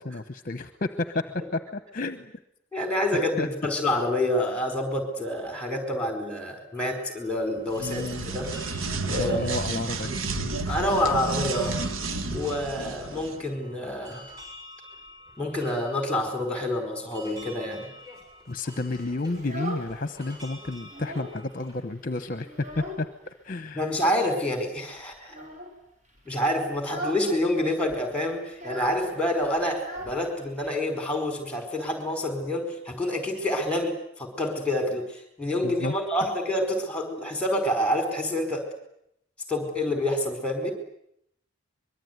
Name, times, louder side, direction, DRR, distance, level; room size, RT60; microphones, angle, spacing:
voice 1, 0.0-1.2 1.5-2.3 3.1-3.5 7.8-8.3 9.0-10.1 10.4-10.6 18.5-22.5 22.8-23.9 35.6-35.9, left 2 dB, 40° left, 10 dB, 1.0 m, -31 dB
voice 2, 2.7-8.5 9.1-9.4 10.7-11.8 12.3-14.2 15.4-17.9 23.7-25.4 26.2-38.7 39.5-40.7, left 1 dB, 5° left, 6 dB, 4.8 m, -27 dB
sound 1, 6.7-21.7, left 1 dB, 15° right, 7.4 m, -48 dB
sound 2, 7.7-13.4, right 3 dB, 75° right, 1.5 m, -31 dB
Child speech kid speaking, 19.3-20.3 20.6-21.4 21.7-21.8 22.2-23.3 23.9-24.4 25.3-25.8 26.2-26.4 26.8-27.3 27.6-27.7 27.9-30.7, right 1 dB, 35° right, 5.9 m, -38 dB
24.0 x 22.5 x 9.5 m, 0.76 s
head